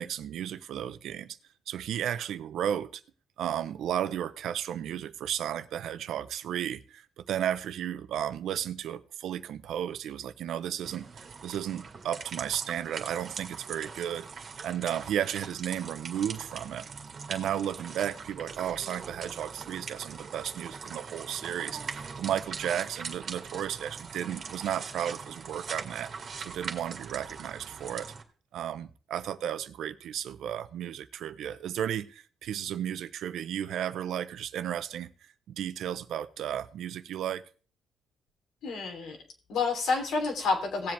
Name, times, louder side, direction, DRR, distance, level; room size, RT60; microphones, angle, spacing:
voice 1, 0.0-1.4 1.7-3.0 3.4-16.9 17.3-26.1 26.4-28.1 28.5-35.1 35.5-37.4, right 10 dB, 75° right, 0.8 m, -34 dB
sound 1, 10.8-28.2, right 5 dB, 50° right, 2.1 m, -42 dB
voice 2, 38.6-39.2 39.5-40.9, left 4 dB, 75° left, 3.3 m, -29 dB
18.0 x 7.7 x 3.4 m
cardioid pair, 90°, 0 cm